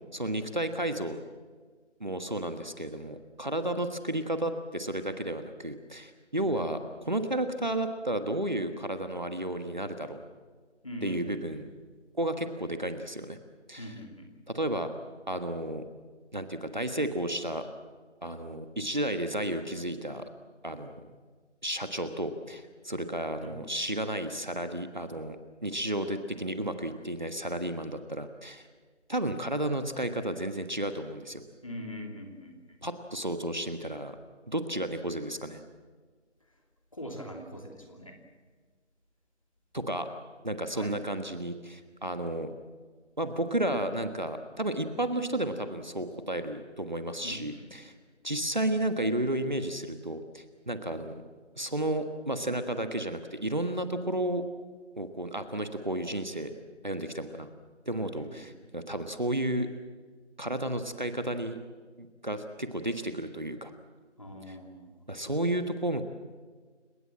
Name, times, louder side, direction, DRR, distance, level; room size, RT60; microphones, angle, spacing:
voice 1, 0.1-1.2 2.0-10.2 11.0-11.6 12.2-13.4 13.7-13.8 14.5-14.9 15.3-15.8 16.3-17.6 18.2-20.2 20.6-21.1 21.6-25.4 25.6-28.7 29.1-31.4 32.8-34.1 34.5-35.6 39.7-40.1 40.4-42.5 43.2-47.9 48.2-51.2 51.6-54.4 55.0-56.5 56.8-57.5 57.9-59.7 60.4-61.6 62.0-63.7 64.5-64.6 65.1-66.0, right 1 dB, 40° right, 8 dB, 1.4 m, -32 dB
voice 2, 10.8-11.5 13.8-14.3 23.4-23.5 31.6-32.8 36.9-38.2 40.7-41.0 47.2-47.7 58.1-58.4 64.2-64.9, equal, 30° left, 3 dB, 2.8 m, -42 dB
29.5 x 17.5 x 7.7 m, 1.5 s
figure-of-eight pair, 175°, 36 cm